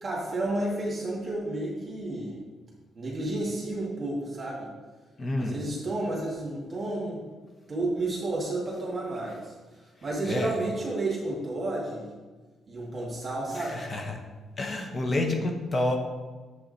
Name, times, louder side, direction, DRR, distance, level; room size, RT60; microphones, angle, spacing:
voice 1, 0.0-2.4 3.0-4.7 5.4-7.2 7.7-9.5 10.0-12.1 12.7-13.8, right 2 dB, 35° right, -4 dB, 2.2 m, -31 dB
voice 2, 5.2-5.6 10.2-10.6 13.5-14.2 14.6-16.0, left 2 dB, 35° left, 3 dB, 1.0 m, -29 dB
7.4 x 6.7 x 4.2 m, 1.3 s
cardioid pair, 90°, 0 cm